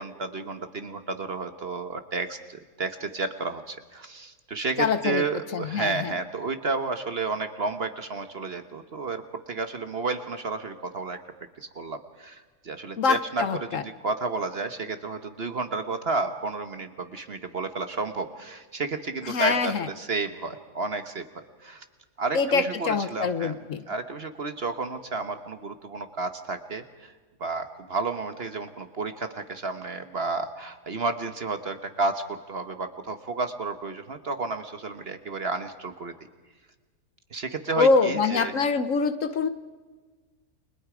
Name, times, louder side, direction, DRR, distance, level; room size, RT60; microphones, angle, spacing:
voice 1, 0.0-9.2 9.5-11.2 11.6-21.8 22.2-23.5 23.9-27.1 27.4-36.1 37.3-38.6, right 3 dB, 45° right, 8 dB, 1.2 m, -31 dB
voice 2, 4.8-5.2 5.5-6.1 13.0-13.8 19.2-19.9 22.3-23.8 37.8-39.5, left 4 dB, 60° left, 11 dB, 1.2 m, -24 dB
29.5 x 22.0 x 5.0 m, 1.4 s
omnidirectional pair, 1.7 m